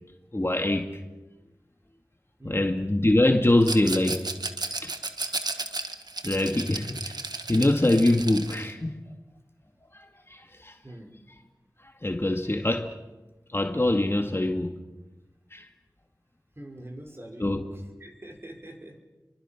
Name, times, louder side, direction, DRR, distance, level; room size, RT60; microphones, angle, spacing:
voice 1, 0.3-0.9 2.4-4.3 4.8-4.9 6.2-7.2 7.5-9.0 9.9-10.0 10.3-10.8 12.0-12.9 13.5-14.7 15.5-15.7 17.4-17.7, left 1 dB, 35° left, 2.0 m, -24 dB
voice 2, 2.4-2.8 10.8-11.1 16.6-19.0, right 1 dB, 35° right, 5.5 m, -44 dB
Rattle, 3.6-8.7, right 3 dB, 75° right, 1.6 m, -34 dB
29.5 x 23.5 x 6.0 m
wide cardioid pair, 50°, 7 cm